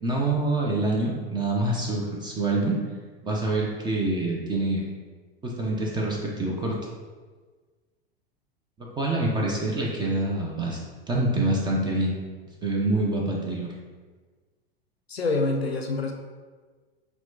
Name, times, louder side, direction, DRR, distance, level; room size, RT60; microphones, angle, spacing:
voice 1, 0.0-2.8 3.2-4.9 5.4-6.8 8.8-10.8 11.1-12.2 12.6-13.7, right 2 dB, 15° right, -2 dB, 0.5 m, -26 dB
voice 2, 15.1-16.1, left 3 dB, 90° left, 3 dB, 0.5 m, -26 dB
5.8 x 2.3 x 2.7 m, 1.4 s
figure-of-eight pair, 90°, 30 cm